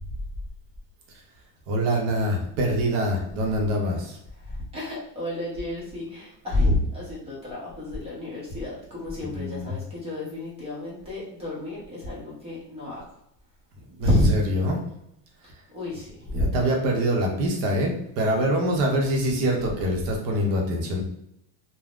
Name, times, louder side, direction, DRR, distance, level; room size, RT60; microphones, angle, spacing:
voice 1, 1.7-4.2 9.2-9.8 14.0-14.8 16.3-21.0, equal, 50° right, 1 dB, 0.7 m, -25 dB
voice 2, 4.7-13.0 14.0-14.3 15.7-16.5, left 1 dB, 15° right, -6 dB, 0.7 m, -28 dB
3.4 x 2.1 x 2.4 m, 0.78 s
cardioid pair, 175°, 47 cm